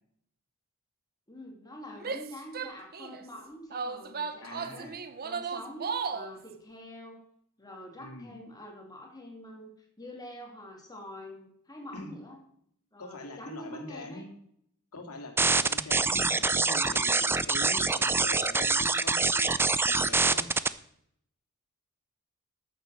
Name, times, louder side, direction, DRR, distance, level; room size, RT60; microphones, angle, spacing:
voice 1, 1.3-5.0 5.2-7.2 7.6-12.4 12.9-14.2, left 1 dB, 20° left, 1 dB, 2.7 m, -45 dB
Female speech woman speaking / Yell, 2.0-3.2 3.7-6.3, right 5 dB, 45° right, 0.7 m, -35 dB
voice 2, 4.4-5.0 8.0-8.4 11.9-12.1 13.0-14.3 14.9-20.5, left 2 dB, 80° left, 4 dB, 2.5 m, -43 dB
sound 1, 15.4-20.7, right 3 dB, 10° right, 0.4 m, -25 dB
13.5 x 7.3 x 6.5 m, 0.69 s
head